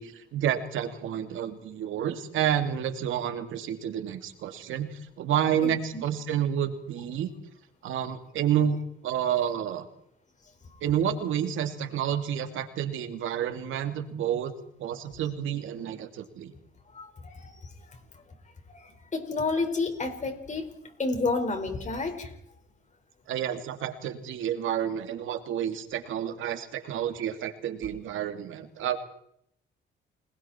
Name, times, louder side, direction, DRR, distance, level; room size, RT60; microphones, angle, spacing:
voice 1, 0.0-7.3 7.8-8.8 9.0-9.9 10.8-14.5 14.8-16.5 23.3-29.0, right 9 dB, 80° right, 8 dB, 2.5 m, -29 dB
voice 2, 16.9-17.5 17.9-18.0 18.7-20.7 21.0-22.3, left 3 dB, 35° left, 6 dB, 5.1 m, -30 dB
30.0 x 20.5 x 4.5 m, 0.71 s
cardioid pair, 90°, 20 cm